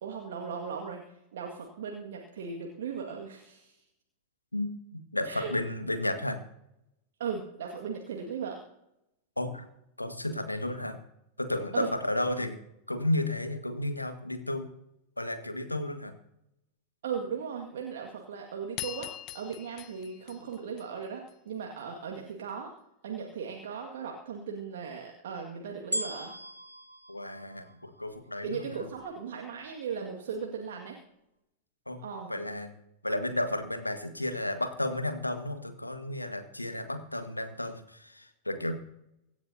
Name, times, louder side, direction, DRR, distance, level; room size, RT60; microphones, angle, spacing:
voice 1, 0.0-3.8 5.3-5.5 7.2-8.6 11.7-11.9 17.0-22.7 23.0-26.3 28.4-31.0 32.0-32.3, right 6 dB, 60° right, 1 dB, 2.0 m, -37 dB
voice 2, 4.5-6.4 9.4-9.6 10.0-11.0 11.4-12.6 12.9-14.7 15.2-16.1 27.1-27.7 28.0-28.9 31.9-32.0 32.3-32.7 33.0-38.7, left 1 dB, 85° left, 7 dB, 1.7 m, -32 dB
sound 1, 18.8-21.3, left 14 dB, 40° left, 0.8 m, -42 dB
sound 2, 25.9-28.3 29.0-29.1, equal, 85° right, 1.2 m, -38 dB
24.5 x 11.5 x 2.8 m, 0.83 s
figure-of-eight pair, 90°, 0 cm